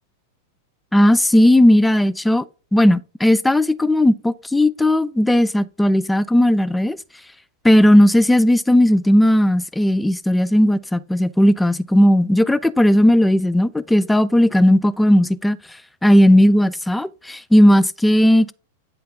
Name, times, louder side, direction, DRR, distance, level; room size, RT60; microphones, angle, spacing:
voice 1, 0.9-2.4 2.7-7.0 7.6-15.6 16.0-18.5, left 1 dB, 5° left, 0.3 m, -15 dB
9.2 x 4.5 x 3.5 m
figure-of-eight pair, 95°, 0 cm